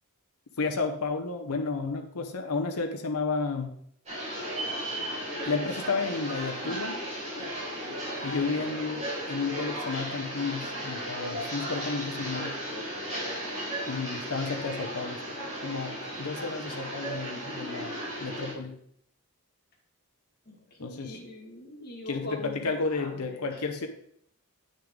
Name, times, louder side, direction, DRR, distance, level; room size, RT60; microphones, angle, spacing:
voice 1, 0.6-3.8 5.5-7.0 7.4-7.5 8.2-12.6 13.9-18.8 20.8-21.2 22.1-23.9, left 4 dB, 75° left, 4 dB, 0.8 m, -32 dB
sound 1, 4.1-18.5, equal, 30° right, 3.9 m, -35 dB
voice 2, 20.5-23.6, left 1 dB, 45° left, -1 dB, 2.0 m, -42 dB
8.7 x 6.5 x 3.8 m, 0.68 s
head